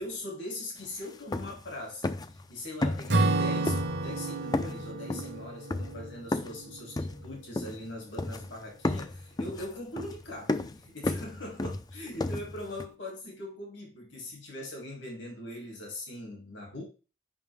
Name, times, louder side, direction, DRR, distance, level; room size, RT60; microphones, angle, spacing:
voice 1, 0.0-16.8, left 1 dB, 75° left, 2.8 m, -41 dB
sound 1, 0.8-0.9 1.1-1.7 2.0-2.4 2.8-3.4 3.7-4.2 4.5-6.6 7.0-7.9 8.2-8.6 8.8-12.9, left 2 dB, 20° left, 0.4 m, -33 dB
Acoustic guitar / Strum, 3.1-7.9, right 2 dB, 60° right, 1.0 m, -31 dB
9.3 x 5.5 x 3.5 m
head